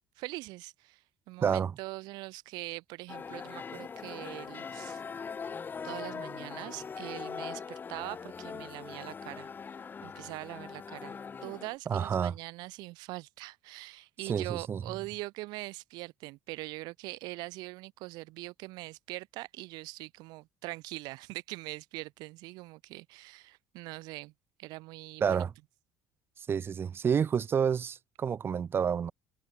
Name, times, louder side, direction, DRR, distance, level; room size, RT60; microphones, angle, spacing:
voice 1, 0.2-5.0 5.8-9.5 10.0-11.2 11.4-24.3 24.6-25.5, right 22 dB, 75° right, 5.7 m, -42 dB
voice 2, 1.4-1.7 11.9-12.3 14.3-14.8 25.2-25.5 26.4-29.1, right 7 dB, 30° right, 1.1 m, -29 dB
sound 1, 3.1-11.7, left 6 dB, 25° left, 3.7 m, -41 dB
cardioid pair, 120°, 7 cm